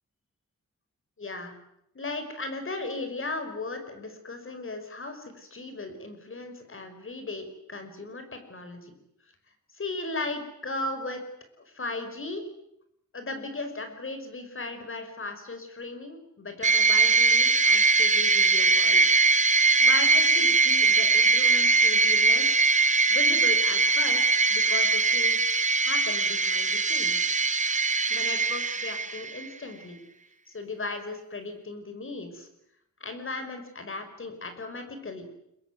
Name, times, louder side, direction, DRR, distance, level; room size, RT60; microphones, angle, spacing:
voice 1, 1.2-1.5 1.9-8.9 9.7-11.3 11.7-12.4 13.1-19.1 19.8-22.7 23.1-25.4 25.8-27.3 28.1-30.0 30.5-32.5 33.0-35.3, left 3 dB, 40° left, 7 dB, 5.3 m, -37 dB
sound 1, 16.6-29.5, right 4 dB, 25° right, 1.0 m, -22 dB
26.5 x 23.5 x 9.5 m, 0.80 s
wide cardioid pair, 165°, 31 cm